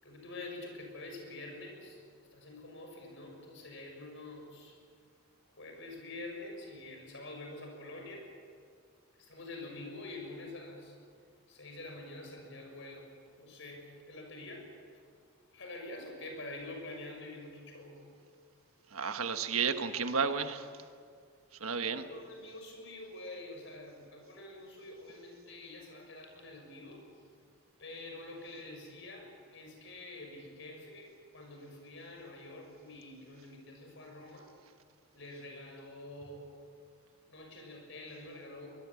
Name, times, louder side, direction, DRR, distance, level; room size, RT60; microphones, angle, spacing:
voice 1, 0.0-2.0 2.3-4.7 5.5-8.2 9.2-10.9 11.5-13.1 13.4-15.0 15.5-18.0 21.8-27.1 27.8-34.5 35.1-36.5 37.3-38.7, left 2 dB, 60° left, 3 dB, 6.6 m, -47 dB
voice 2, 18.9-20.7 21.6-22.0, right 5 dB, 80° right, 8 dB, 1.5 m, -32 dB
24.0 x 21.0 x 8.5 m, 2.1 s
head